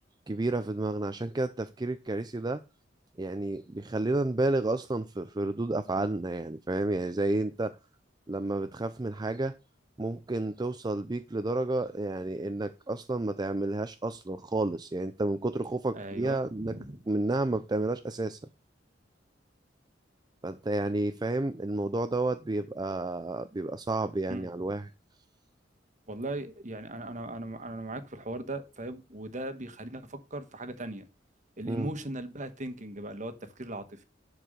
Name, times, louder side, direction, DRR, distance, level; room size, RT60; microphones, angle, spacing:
voice 1, 0.3-2.6 3.2-7.7 8.3-9.5 10.0-16.7 17.1-18.4 20.4-24.9 31.6-31.9, right 2 dB, 25° right, 0.5 m, -31 dB
voice 2, 15.9-17.0 24.3-24.7 26.1-31.1 31.6-34.0, right 1 dB, 45° right, 1.4 m, -38 dB
11.0 x 4.8 x 6.6 m
head